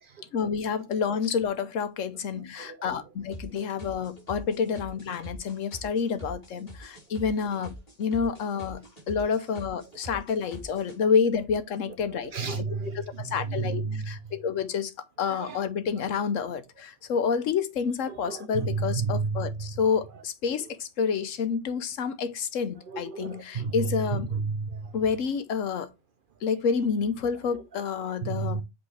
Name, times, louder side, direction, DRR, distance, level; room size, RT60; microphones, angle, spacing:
voice 1, 0.3-8.8 9.1-12.6 12.9-14.9 15.2-24.3 24.9-25.9 26.4-28.6, left 6 dB, 90° left, 1.2 m, -29 dB
voice 2, 2.3-3.0 12.1-14.1 15.3-15.6 18.1-19.7 20.6-20.7 22.9-24.9 27.7-27.8 28.2-28.6, right 4 dB, 55° right, 0.7 m, -32 dB
sound 1, 3.3-11.0, equal, 30° left, 3.8 m, -44 dB
7.9 x 4.0 x 3.3 m
omnidirectional pair, 1.3 m